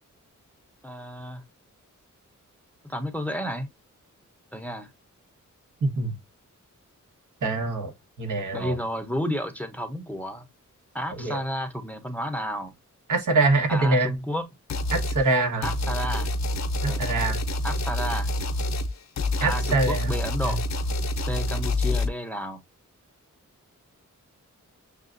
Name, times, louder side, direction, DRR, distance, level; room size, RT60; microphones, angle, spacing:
voice 1, 0.8-1.4 2.8-3.7 4.5-4.9 8.5-10.5 10.9-12.7 13.7-14.5 15.6-16.3 16.9-17.1 17.6-18.3 19.4-20.6 21.2-22.6, equal, 5° left, 0.7 m, -31 dB
voice 2, 5.8-6.2 7.4-7.9 8.2-8.7 11.2-11.4 13.1-14.1 14.9-15.7 16.8-17.4 19.4-20.1 20.4-20.6, right 2 dB, 75° right, 1.3 m, -24 dB
sound 1, 14.7-15.2 15.6-22.1, left 1 dB, 60° left, 0.6 m, -27 dB
6.6 x 2.3 x 2.5 m
wide cardioid pair, 110°, 31 cm